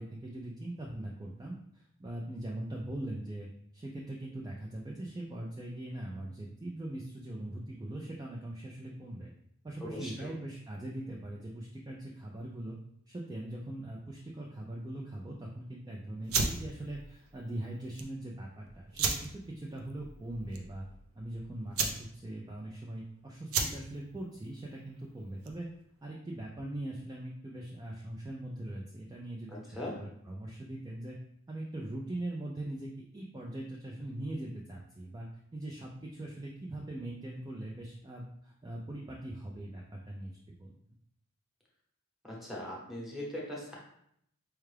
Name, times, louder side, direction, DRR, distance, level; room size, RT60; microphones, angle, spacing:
voice 1, 0.0-3.5 3.7-9.3 9.6-12.8 13.1-20.9 21.2-25.7 26.0-31.2 31.5-35.3 35.5-40.7, right 1 dB, 15° right, -2 dB, 0.3 m, -41 dB
voice 2, 9.8-10.3 29.5-29.9 42.2-43.8, left 1 dB, ahead, -4 dB, 0.9 m, -40 dB
sound 1, 16.2-25.8, right 5 dB, 70° right, 0.5 m, -36 dB
4.5 x 2.3 x 3.2 m, 0.72 s
head